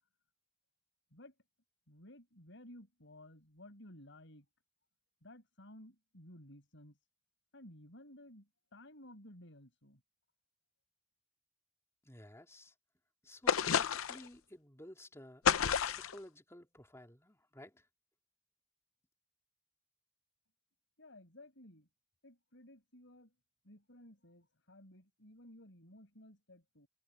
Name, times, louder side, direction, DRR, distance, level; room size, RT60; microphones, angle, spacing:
voice 1, 1.9-4.4 5.2-7.0 7.5-10.0 21.0-21.9 22.2-23.3 23.6-26.9, left 1 dB, 65° left, 6.1 m, -56 dB
voice 2, 12.0-12.7 13.2-17.9, left 1 dB, 15° left, 3.4 m, -54 dB
sound 1, 13.5-14.3 15.4-16.2, left 7 dB, 90° left, 0.6 m, -30 dB
head